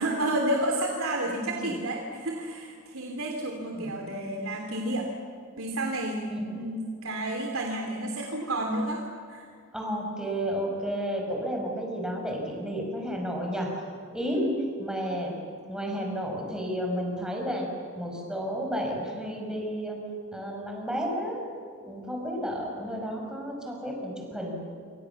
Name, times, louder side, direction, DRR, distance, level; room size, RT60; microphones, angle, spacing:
voice 1, 0.0-5.1 5.6-9.0 9.3-9.5 14.3-14.6, right 1 dB, 80° right, 1 dB, 3.1 m, -30 dB
voice 2, 1.4-1.8 3.7-4.0 6.3-6.6 9.7-13.8 14.1-14.4 14.8-15.3 15.7-17.7 17.9-20.0 20.3-21.4 21.8-24.5, equal, 5° right, 0 dB, 6.1 m, -32 dB
27.5 x 26.5 x 7.2 m, 2.2 s
head